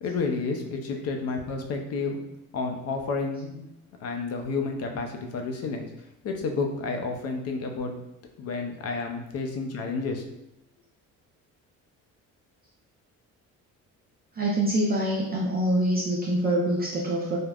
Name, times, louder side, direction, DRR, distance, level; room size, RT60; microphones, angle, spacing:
voice 1, 0.0-2.2 2.5-3.7 4.0-8.0 8.4-10.3, left 4 dB, 50° left, 4 dB, 0.5 m, -31 dB
voice 2, 14.4-17.4, right 1 dB, 30° right, -4 dB, 0.4 m, -25 dB
3.4 x 2.1 x 2.3 m, 0.85 s
cardioid pair, 120°, 31 cm